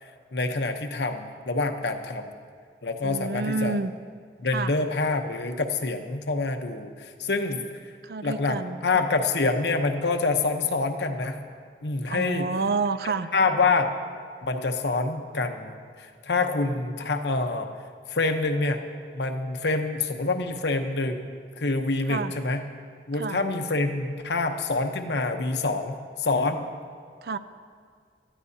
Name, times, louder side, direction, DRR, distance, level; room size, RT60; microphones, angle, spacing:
voice 1, 0.0-2.3 2.8-3.8 4.4-7.9 8.2-11.4 11.8-12.5 13.3-13.9 14.4-17.7 18.1-18.8 19.1-21.3 21.6-22.7 23.1-26.7, left 3 dB, 80° left, 6 dB, 0.9 m, -26 dB
voice 2, 3.0-3.9 4.5-4.7 8.0-9.1 12.1-13.3 22.1-22.3 23.2-23.4 27.2-27.4, right 4 dB, 60° right, 12 dB, 0.4 m, -29 dB
19.0 x 13.0 x 2.8 m, 2.1 s
head